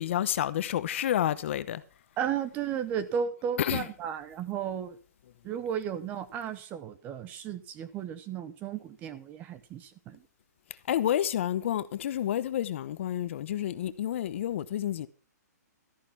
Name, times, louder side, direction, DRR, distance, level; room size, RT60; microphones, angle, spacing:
voice 1, 0.0-1.8 3.6-3.9 10.9-15.1, left 11 dB, 45° left, 0.9 m, -29 dB
voice 2, 2.2-5.0 5.4-10.2, right 8 dB, 15° right, 0.9 m, -34 dB
13.5 x 10.0 x 5.7 m
hypercardioid pair, 160°, 9 cm